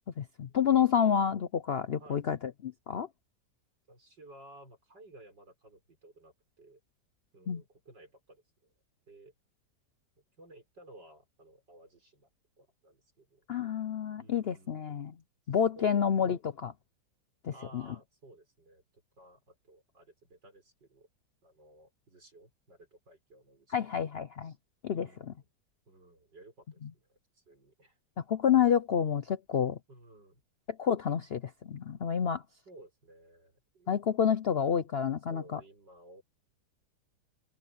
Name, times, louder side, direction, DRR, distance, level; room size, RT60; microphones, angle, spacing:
voice 1, 0.2-2.4 2.6-3.1 7.5-7.6 13.5-15.1 15.5-16.7 17.4-17.8 23.7-24.5 24.8-25.3 28.3-29.8 30.8-32.4 33.9-35.6, left 8 dB, 65° left, 0.6 m, -29 dB
voice 2, 1.0-1.3 2.0-2.2 3.9-6.8 7.3-8.7 9.1-9.3 10.4-12.3 12.6-13.4 14.2-14.8 15.8-16.1 17.5-21.1 21.4-23.9 24.4-24.6 24.9-25.4 25.9-28.0 29.9-30.4 32.5-34.0 35.3-36.2, right 1 dB, 85° right, 7.7 m, -56 dB
omnidirectional pair, 1.8 m